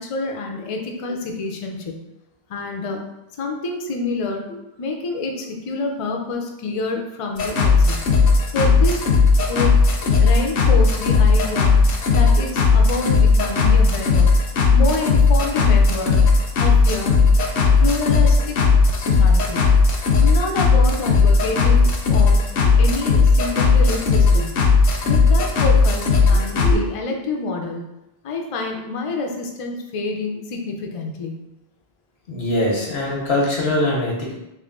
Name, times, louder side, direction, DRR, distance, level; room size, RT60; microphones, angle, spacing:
voice 1, 0.0-2.0 2.5-3.0 3.4-4.4 4.8-8.1 8.5-9.0 9.5-11.8 12.1-14.3 14.7-16.2 16.6-17.1 17.8-18.6 19.0-19.8 20.2-22.4 22.7-24.6 25.0-27.9 28.2-31.5, left 3 dB, 45° left, 2 dB, 0.5 m, -27 dB
sound 1, 7.4-26.7, left 4 dB, 70° left, 0.8 m, -16 dB
voice 2, 32.3-34.3, left 1 dB, 90° left, -2 dB, 1.1 m, -22 dB
3.5 x 2.6 x 3.7 m, 0.91 s
omnidirectional pair, 1.0 m